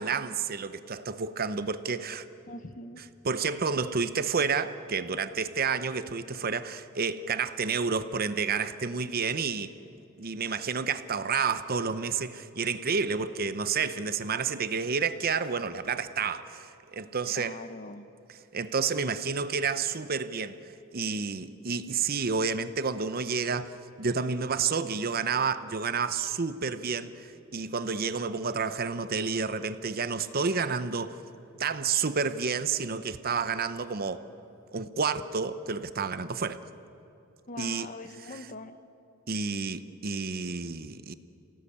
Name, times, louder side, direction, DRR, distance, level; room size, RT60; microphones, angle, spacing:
voice 1, 0.0-2.2 3.2-9.7 10.2-17.6 18.5-20.6 20.9-23.7 24.0-31.2 31.6-34.3 34.7-36.6 37.6-37.9 39.3-41.1, right 5 dB, 45° right, 0.8 m, -30 dB
voice 2, 2.5-3.0 17.3-18.1 37.5-38.8, left 2 dB, 40° left, 1.1 m, -42 dB
27.5 x 17.5 x 8.6 m
head